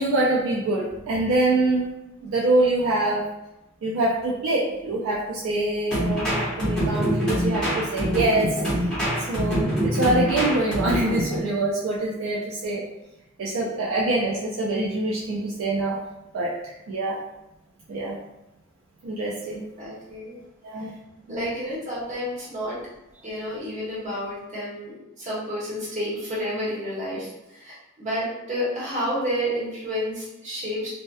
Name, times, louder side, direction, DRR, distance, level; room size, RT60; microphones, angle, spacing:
voice 1, 0.0-1.9 2.2-3.3 3.8-8.6 9.2-12.8 13.4-16.0 16.3-17.2 17.9-18.2 19.0-19.7 20.6-20.9 21.3-21.5, right 2 dB, 70° right, -5 dB, 0.4 m, -25 dB
sound 1, 5.9-11.4, equal, 5° left, 0.9 m, -25 dB
voice 2, 19.8-20.4 21.3-22.8 23.2-30.9, equal, 35° right, -7 dB, 1.0 m, -30 dB
2.7 x 2.1 x 2.2 m, 0.89 s
head